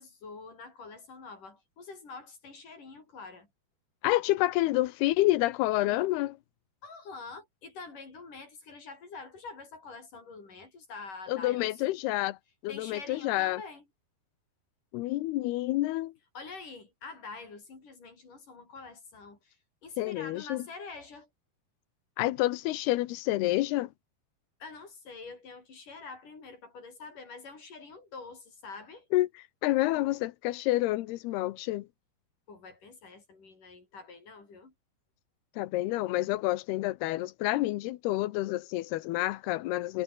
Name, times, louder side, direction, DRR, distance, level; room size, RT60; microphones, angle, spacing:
voice 1, 0.0-3.5 6.8-11.7 12.7-13.8 16.3-19.6 19.8-21.3 24.6-29.1 32.5-34.7, left 4 dB, 55° left, 7.9 m, -46 dB
voice 2, 4.0-6.4 11.3-12.4 12.6-13.6 14.9-16.1 20.0-20.6 22.2-23.9 29.1-31.9 35.6-40.0, left 17 dB, 90° left, 2.9 m, -28 dB
omnidirectional pair, 4.6 m